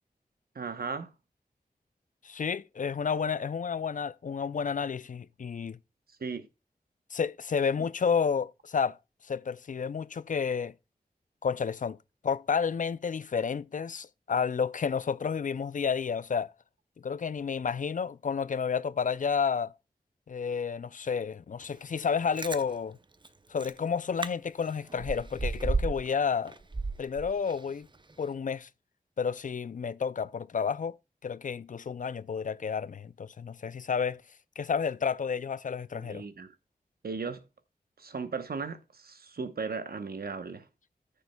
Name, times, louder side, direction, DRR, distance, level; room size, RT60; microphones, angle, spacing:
voice 1, 0.5-1.1 6.2-6.5 35.9-36.5 37.0-37.4 38.0-40.6, right 4 dB, 80° right, 1.0 m, -36 dB
voice 2, 2.2-5.8 7.1-9.0 9.3-10.7 11.4-12.0 12.2-16.5 17.0-19.7 20.3-23.0 23.5-26.5 27.0-27.9 28.2-28.7 29.2-31.0 31.2-34.2 34.6-36.2, left 6 dB, 55° left, 0.4 m, -31 dB
Chewing mastication, 22.1-22.6 23.2-23.3 23.6-23.8 24.2-24.3 24.6-26.1 26.5-27.7 28.1-28.2, right 3 dB, 30° right, 0.6 m, -33 dB
14.5 x 6.8 x 2.3 m
cardioid pair, 40°, 16 cm